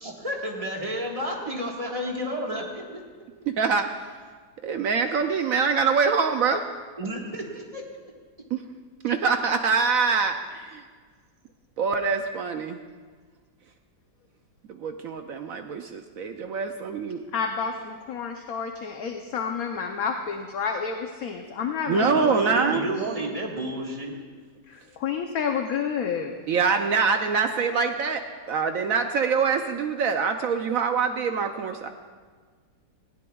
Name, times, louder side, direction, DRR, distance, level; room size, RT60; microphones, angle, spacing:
voice 1, 0.0-3.0 3.4-3.5 7.0-8.1 21.9-24.2, equal, 20° right, -1 dB, 1.5 m, -31 dB
voice 2, 3.5-3.9 4.6-6.6 8.5-8.6 9.0-10.8 11.8-12.8 14.8-17.2 21.9-22.8 26.5-28.2 28.5-31.9, right 5 dB, 70° right, 6 dB, 0.8 m, -24 dB
voice 3, 17.3-22.1 24.7-26.3, left 6 dB, 60° left, 4 dB, 1.1 m, -29 dB
19.5 x 15.5 x 2.3 m, 1.5 s
omnidirectional pair, 1.9 m